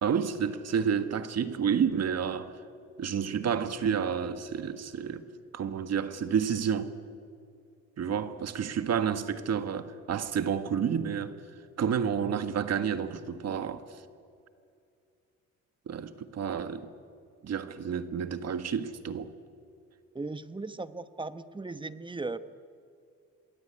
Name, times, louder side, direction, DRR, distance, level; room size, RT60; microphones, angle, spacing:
voice 1, 0.0-2.5 3.0-5.3 5.5-6.9 8.0-11.3 11.8-13.8 15.9-16.9 17.4-19.3, right 7 dB, 55° right, 1.7 m, -30 dB
voice 2, 20.1-22.4, right 3 dB, 15° right, 1.2 m, -37 dB
27.0 x 21.0 x 9.9 m
cardioid pair, 90°, 30 cm